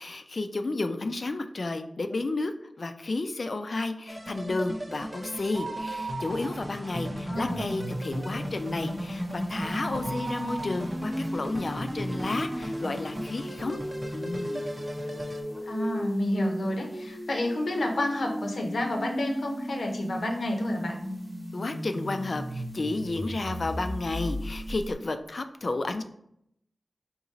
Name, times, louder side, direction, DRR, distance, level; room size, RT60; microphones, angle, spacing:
voice 1, 0.0-2.5 2.8-13.8 14.1-14.6 21.5-26.0, left 2 dB, 60° left, 8 dB, 0.4 m, -32 dB
sound 1, 4.1-15.4, equal, 35° right, 0.7 m, -36 dB
sound 2, 5.4-7.1 7.4-7.5 7.9-12.3 12.9-13.0 13.7-13.8 14.1-14.2, right 3 dB, 75° right, 0.5 m, -39 dB
voice 2, 7.3-7.6 15.7-21.0, left 1 dB, 85° left, 2 dB, 0.7 m, -29 dB
sound 3, 7.3-24.9, equal, 20° left, 0.9 m, -37 dB
3.9 x 2.9 x 4.0 m, 0.73 s
cardioid pair, 50°, 0 cm